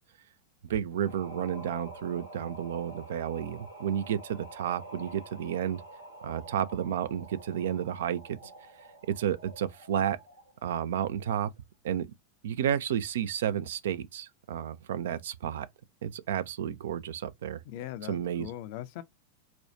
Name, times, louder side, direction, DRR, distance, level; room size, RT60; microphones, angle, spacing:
voice 1, 0.7-5.8 6.2-8.4 9.2-10.2 10.6-11.5 11.8-12.1 12.4-15.7 16.0-17.6 18.1-18.5, right 9 dB, 60° right, 0.4 m, -31 dB
sound 1, 0.9-10.6, right 1 dB, 80° right, 1.3 m, -48 dB
voice 2, 17.6-19.0, left 13 dB, 50° left, 0.5 m, -40 dB
4.3 x 2.3 x 2.8 m
figure-of-eight pair, 90°, 0 cm